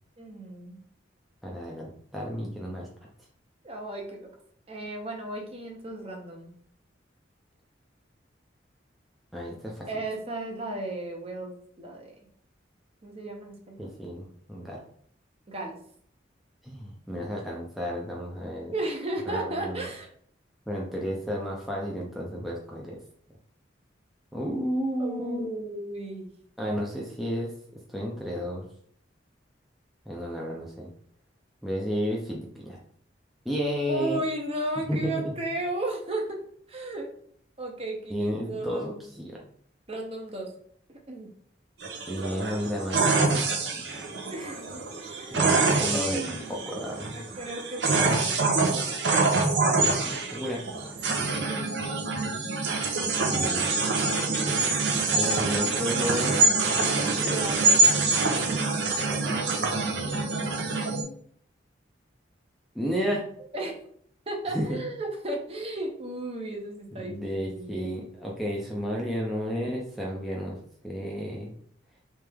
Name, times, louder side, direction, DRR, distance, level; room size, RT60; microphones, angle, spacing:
voice 1, 0.2-0.8 3.6-4.3 4.7-6.5 9.9-12.1 13.0-13.9 15.5-15.8 18.7-20.1 25.0-26.3 33.9-36.4 36.7-37.1 37.6-39.1 39.9-40.5 40.9-41.3 44.3-46.6 47.1-48.3 50.7-51.2 51.5-51.6 53.2-53.7 57.3-57.9 63.5-63.8 64.3-67.9, right 1 dB, 30° right, 1 dB, 0.8 m, -35 dB
voice 2, 1.4-2.9 9.3-9.9 13.8-14.8 16.6-18.7 19.3-19.9 20.7-23.0 24.3-25.5 26.6-27.5 27.9-28.7 30.1-30.9 31.6-32.8 33.4-34.2 34.9-35.1 38.1-39.4 42.1-44.1 45.3-47.3 49.8-50.6 53.2-53.8 54.3-54.6 55.1-57.3 59.6-60.3 62.7-63.2 64.5-64.8 67.0-70.6 70.8-71.5, equal, ahead, -3 dB, 0.5 m, -32 dB
sound 1, 41.8-61.0, right 3 dB, 65° right, 0.8 m, -25 dB
3.4 x 3.3 x 3.4 m, 0.62 s
head